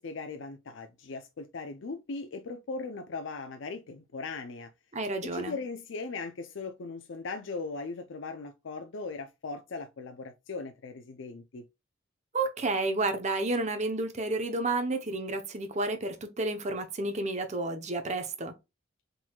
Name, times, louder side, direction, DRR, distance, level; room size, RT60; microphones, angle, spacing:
voice 1, 0.0-4.7 5.2-11.6, left 3 dB, 70° left, 0.5 m, -39 dB
voice 2, 4.9-5.6 12.3-18.6, right 2 dB, 35° right, 0.8 m, -31 dB
4.6 x 3.8 x 2.3 m
head